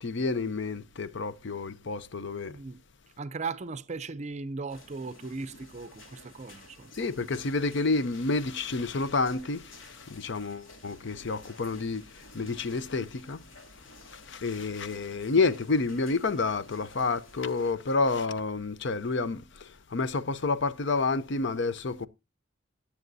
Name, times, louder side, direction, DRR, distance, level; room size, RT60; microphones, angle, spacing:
voice 1, 0.0-2.6 7.0-13.4 13.7-22.1, left 3 dB, 65° left, 0.7 m, -29 dB
voice 2, 2.5-2.8 3.2-6.9, right 4 dB, 35° right, 0.5 m, -37 dB
sound 1, 4.7-17.7, left 2 dB, 85° left, 2.7 m, -53 dB
18.5 x 7.2 x 2.7 m
head